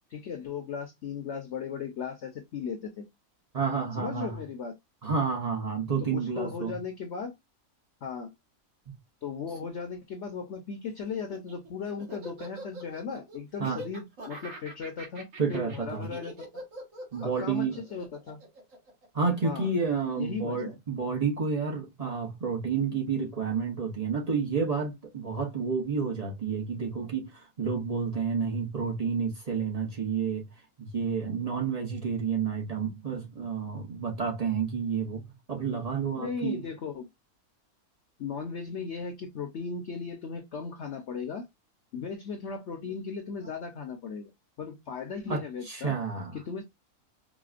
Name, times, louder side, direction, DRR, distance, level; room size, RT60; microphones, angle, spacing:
voice 1, 0.1-3.1 4.0-4.7 6.0-7.3 8.0-8.3 9.2-16.4 17.2-18.4 19.4-19.7 20.2-20.8 36.2-37.0 38.2-41.4 41.9-44.3 44.6-45.9 46.3-46.6, left 5 dB, 55° left, 0.9 m, -37 dB
voice 2, 3.5-4.4 5.0-6.7 13.6-13.8 15.4-16.1 17.1-17.8 19.1-30.5 30.8-36.6 45.3-46.3, right 5 dB, 35° right, 0.7 m, -30 dB
Laughter, 11.2-19.6, right 1 dB, 60° right, 1.8 m, -44 dB
4.9 x 2.2 x 2.4 m
omnidirectional pair, 1.5 m